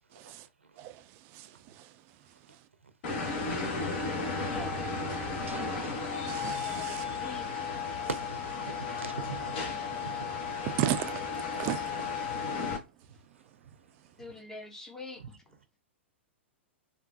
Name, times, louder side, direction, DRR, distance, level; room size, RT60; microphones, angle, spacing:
sound 1, 3.0-12.8, left 4 dB, 45° left, 1.0 m, -34 dB
voice 1, 4.5-4.8 6.6-7.5 14.2-15.3, left 2 dB, 5° left, 0.7 m, -45 dB
voice 2, 5.4-6.0 6.8-6.9 8.1-8.2 8.6-9.8 10.0-10.4 15.2-15.3, right 5 dB, 80° right, 0.6 m, -41 dB
voice 3, 6.3-7.0 10.8-11.2 11.6-11.8, right 13 dB, 35° right, 0.4 m, -33 dB
3.4 x 2.4 x 2.5 m
figure-of-eight pair, 105°, 7 cm